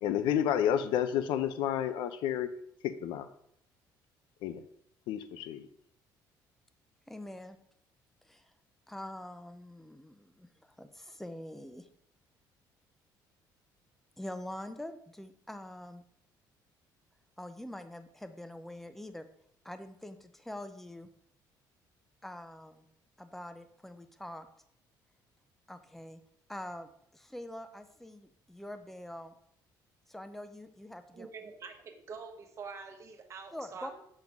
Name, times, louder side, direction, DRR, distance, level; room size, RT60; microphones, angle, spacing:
voice 1, 0.0-2.5 2.8-3.3 4.4-4.6 5.1-5.7, left 10 dB, 85° left, 11 dB, 0.6 m, -30 dB
voice 2, 7.1-7.6 8.3-8.5 8.9-11.9 14.2-16.0 17.4-19.3 19.6-21.1 22.2-22.9 23.2-24.5 25.7-26.2 26.5-29.3 30.1-31.3 33.5-33.9, left 1 dB, 5° left, 9 dB, 0.6 m, -44 dB
voice 3, 31.1-34.0, right 5 dB, 40° right, 5 dB, 1.2 m, -45 dB
7.5 x 3.8 x 5.9 m, 0.70 s
cardioid pair, 150°, 8 cm